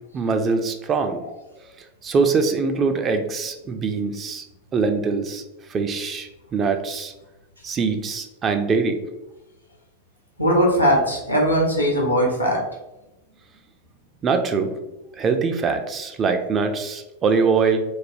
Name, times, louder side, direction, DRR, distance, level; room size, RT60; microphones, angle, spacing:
voice 1, 0.1-1.2 2.0-4.4 4.7-5.4 5.7-7.1 7.6-9.0 14.2-14.7 15.2-17.8, right 4 dB, 25° right, 6 dB, 0.3 m, -23 dB
voice 2, 10.4-12.6, equal, 85° left, -1 dB, 0.7 m, -19 dB
3.2 x 2.1 x 2.6 m, 0.98 s
figure-of-eight pair, 90°, 0 cm